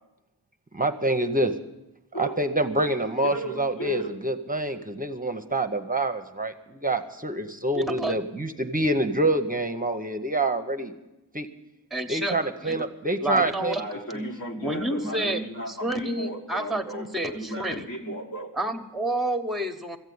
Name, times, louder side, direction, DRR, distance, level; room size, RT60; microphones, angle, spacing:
voice 1, 0.7-1.6 2.1-10.9 11.3-11.5 12.1-13.8 14.1-14.2, right 2 dB, 20° right, 7 dB, 0.8 m, -26 dB
voice 2, 3.2-4.2 13.7-18.5, right 1 dB, 55° left, -1 dB, 1.8 m, -35 dB
voice 3, 7.7-8.2 11.9-12.9 13.2-13.8 14.6-17.9 18.5-20.0, right 1 dB, ahead, 7 dB, 1.1 m, -30 dB
14.5 x 8.1 x 9.4 m, 0.95 s
wide cardioid pair, 65°, 39 cm